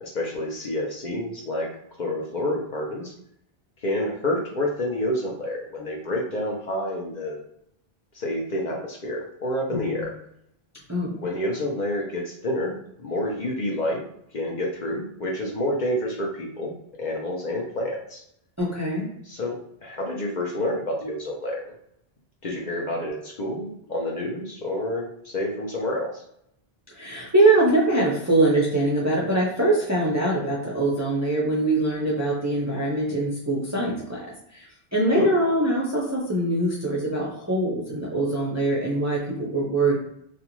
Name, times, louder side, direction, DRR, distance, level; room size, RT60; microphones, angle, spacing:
voice 1, 0.0-1.7 2.0-3.1 3.8-7.4 8.1-10.1 11.1-12.7 13.0-14.0 14.3-16.7 17.0-18.2 19.2-19.6 19.8-21.7 22.4-26.2 35.1-35.3, left 1 dB, 55° left, -1 dB, 0.7 m, -28 dB
voice 2, 9.7-10.0 10.9-11.2 18.6-19.1 27.0-34.3 34.5-34.6 34.9-40.0, right 2 dB, 25° right, -4 dB, 0.4 m, -23 dB
2.5 x 2.2 x 2.9 m, 0.72 s
omnidirectional pair, 1.1 m